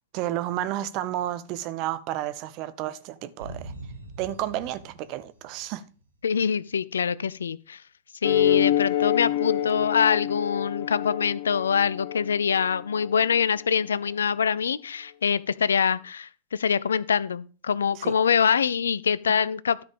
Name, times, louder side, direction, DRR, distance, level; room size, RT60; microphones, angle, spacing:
voice 1, 0.1-3.7 4.2-5.8 17.9-18.1, right 13 dB, 45° right, 0.9 m, -31 dB
sound 1, 3.4-6.2, right 2 dB, 85° right, 1.7 m, -43 dB
voice 2, 6.2-7.8 8.2-19.8, left 7 dB, 75° left, 0.4 m, -24 dB
sound 2, 8.2-13.2, left 11 dB, 55° left, 0.8 m, -26 dB
12.5 x 5.4 x 5.2 m
figure-of-eight pair, 90°, 0 cm